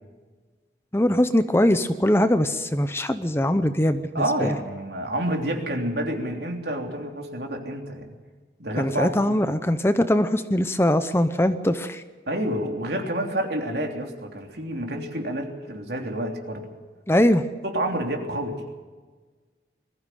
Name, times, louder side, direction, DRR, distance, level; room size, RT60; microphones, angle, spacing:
voice 1, 0.9-4.5 8.8-12.0 17.1-17.4, left 1 dB, 15° left, 11 dB, 0.7 m, -21 dB
voice 2, 4.1-8.1 8.6-9.4 12.3-16.7 17.6-18.6, right 1 dB, 70° right, 2 dB, 3.3 m, -29 dB
21.5 x 15.0 x 9.3 m, 1.4 s
head